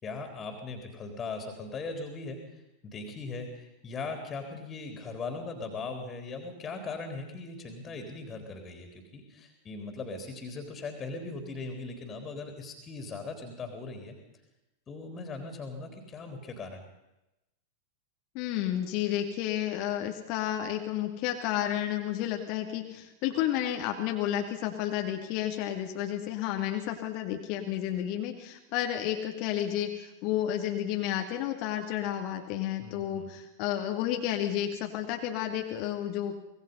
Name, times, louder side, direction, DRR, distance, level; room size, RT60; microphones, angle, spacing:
voice 1, 0.0-14.1 14.9-16.8 32.8-33.3, left 3 dB, 20° left, 5 dB, 3.8 m, -39 dB
voice 2, 18.3-36.3, left 11 dB, 45° left, 4 dB, 2.2 m, -31 dB
25.0 x 19.5 x 5.6 m, 0.94 s
figure-of-eight pair, 90°, 0 cm